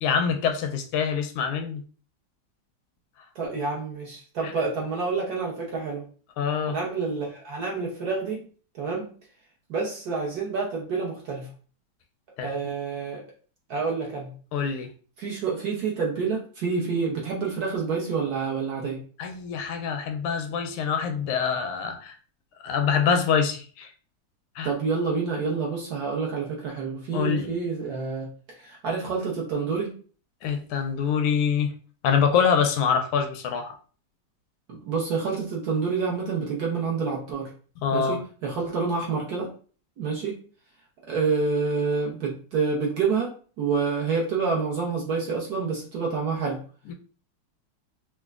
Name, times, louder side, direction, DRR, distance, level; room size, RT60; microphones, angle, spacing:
voice 1, 0.0-1.8 4.4-4.5 6.4-6.8 12.4-12.5 14.5-14.9 19.2-22.1 22.6-23.9 24.6-24.7 27.1-27.5 30.4-31.7 32.0-33.8 37.8-38.2 46.9-47.0, left 6 dB, 85° left, 5 dB, 1.5 m, -25 dB
voice 2, 3.3-6.1 6.7-8.4 8.7-9.1 9.7-11.5 12.4-13.3 13.7-14.3 15.2-19.0 24.6-29.9 34.7-37.5 37.9-39.5 40.0-40.4 41.0-46.6, right 4 dB, 65° right, -2 dB, 1.0 m, -28 dB
5.4 x 2.1 x 2.4 m, 0.40 s
omnidirectional pair, 2.4 m